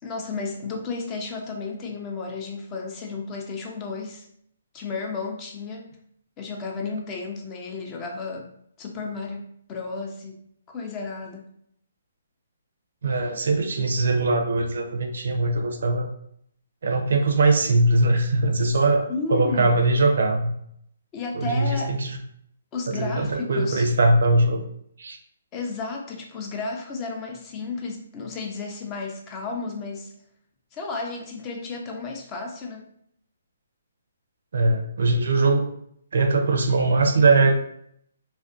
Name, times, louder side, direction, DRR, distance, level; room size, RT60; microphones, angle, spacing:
voice 1, 0.0-4.3 4.7-5.9 6.4-8.5 8.8-10.4 10.7-11.5 18.7-18.8 19.1-19.8 21.1-21.9 22.7-23.9 25.5-30.1 30.7-32.8, left 4 dB, 20° left, 1 dB, 0.4 m, -33 dB
voice 2, 13.0-16.1 16.8-20.5 21.3-22.2 22.9-24.6 25.0-25.2 34.5-35.7 36.1-37.5, right 2 dB, 70° right, 4 dB, 0.4 m, -21 dB
2.5 x 2.1 x 2.4 m, 0.70 s
hypercardioid pair, 155°, 0 cm